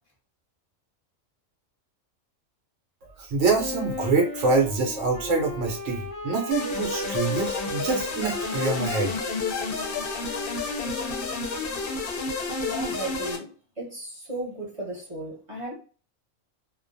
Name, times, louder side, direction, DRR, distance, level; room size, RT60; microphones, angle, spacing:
voice 1, 3.2-9.1, right 4 dB, 70° right, 1.0 m, -25 dB
Wind instrument woodwind instrument, 3.5-11.5, left 2 dB, 10° left, 0.9 m, -36 dB
sound 1, 6.5-13.4, left 4 dB, 60° left, 0.7 m, -30 dB
voice 2, 12.5-15.7, right 1 dB, 30° right, 0.9 m, -35 dB
2.4 x 2.2 x 2.5 m
omnidirectional pair, 1.3 m